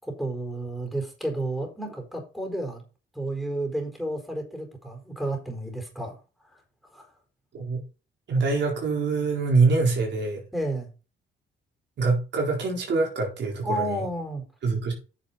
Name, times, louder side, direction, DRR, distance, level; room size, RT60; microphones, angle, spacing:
voice 1, 0.0-2.8 3.1-6.2 6.9-7.1 10.5-10.9 13.6-14.4, right 1 dB, ahead, 3 dB, 4.5 m, -31 dB
voice 2, 8.3-10.4 12.0-14.0 14.6-14.9, right 3 dB, 65° right, 0 dB, 4.2 m, -24 dB
9.5 x 7.0 x 4.2 m, 0.33 s
cardioid pair, 90°, 20 cm